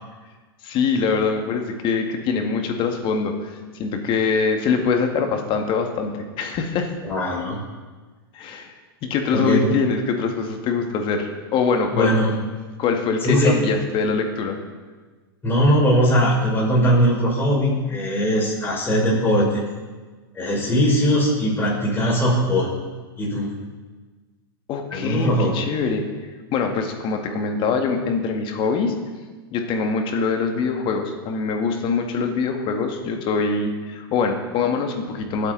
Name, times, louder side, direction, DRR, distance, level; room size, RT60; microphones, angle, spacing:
voice 1, 0.6-6.9 8.3-8.7 9.0-12.2 12.8-14.6 24.7-26.0 26.5-28.9 29.5-35.5, left 5 dB, 40° left, 4 dB, 2.1 m, -23 dB
voice 2, 7.0-7.6 9.3-9.8 11.9-12.3 13.2-13.5 15.4-19.6 20.3-22.7 23.2-23.5 24.9-25.6, equal, 15° left, -4 dB, 5.6 m, -20 dB
23.5 x 8.4 x 4.1 m, 1.3 s
hypercardioid pair, 110°, 13 cm